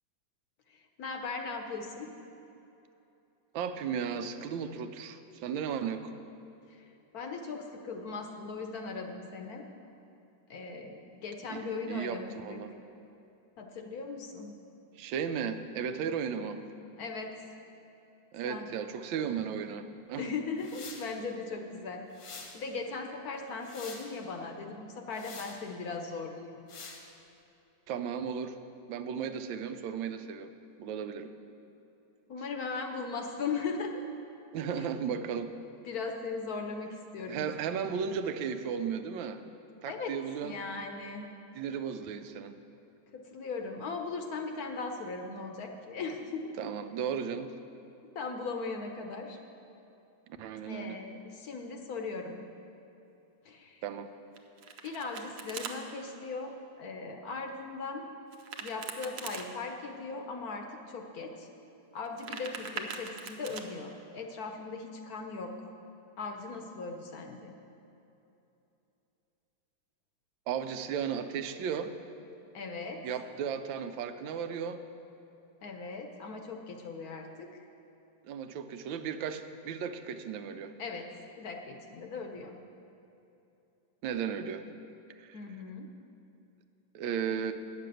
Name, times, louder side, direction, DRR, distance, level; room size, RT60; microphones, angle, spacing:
voice 1, 0.7-2.1 6.7-6.9 7.1-9.7 10.5-12.6 13.6-14.5 17.0-17.3 18.4-18.7 20.2-26.5 32.3-34.0 34.8-34.9 35.8-37.5 39.8-40.1 40.4-41.3 43.1-46.6 48.1-49.4 50.7-52.4 53.4-53.8 54.8-58.0 58.6-61.5 61.9-65.5 66.2-67.5 72.5-73.0 75.6-77.6 80.8-81.1 81.4-82.6 85.3-85.9, left 4 dB, 65° left, 4 dB, 1.0 m, -38 dB
voice 2, 3.5-6.1 11.5-12.8 15.0-16.6 18.3-20.3 27.9-28.6 28.9-30.5 30.8-31.3 34.5-35.5 37.3-39.4 39.8-40.5 41.5-42.5 46.6-47.5 50.4-51.0 53.8-54.1 70.5-71.9 73.0-74.8 78.2-80.8 84.0-84.6 85.2-85.4 86.9-87.5, right 7 dB, 85° right, 9 dB, 1.4 m, -35 dB
sound 1, 20.6-21.1 22.1-22.6 23.3-24.1 25.1-25.6 26.7-27.0, left 4 dB, 90° left, 1.9 m, -46 dB
Domestic sounds home sounds, 54.3-55.7 58.3-59.5 62.0-63.6, right 5 dB, 65° right, 1.2 m, -41 dB
9.6 x 6.7 x 7.6 m, 2.9 s
omnidirectional pair, 2.0 m